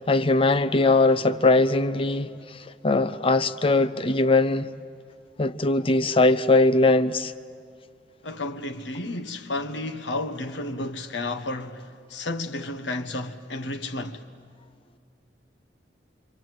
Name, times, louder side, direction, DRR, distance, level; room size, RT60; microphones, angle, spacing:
voice 1, 0.1-2.6 2.8-4.7 5.4-7.3, left 2 dB, 30° left, 0.6 m, -21 dB
voice 2, 8.2-14.2, left 2 dB, 85° left, 1.3 m, -32 dB
26.5 x 24.5 x 7.8 m
head